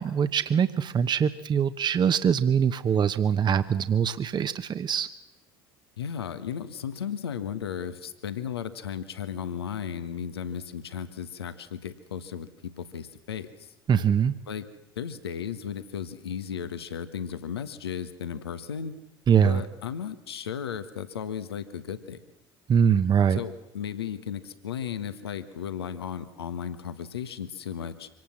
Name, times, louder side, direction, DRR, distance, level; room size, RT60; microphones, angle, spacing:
voice 1, 0.0-5.1 13.9-14.3 19.3-19.6 22.7-23.4, right 7 dB, 35° right, 12 dB, 1.1 m, -23 dB
voice 2, 6.0-13.7 14.5-14.7 15.0-18.9 19.4-22.2 23.3-28.1, left 8 dB, 80° left, 12 dB, 1.4 m, -35 dB
25.5 x 18.5 x 7.4 m, 0.93 s
figure-of-eight pair, 65°, 13 cm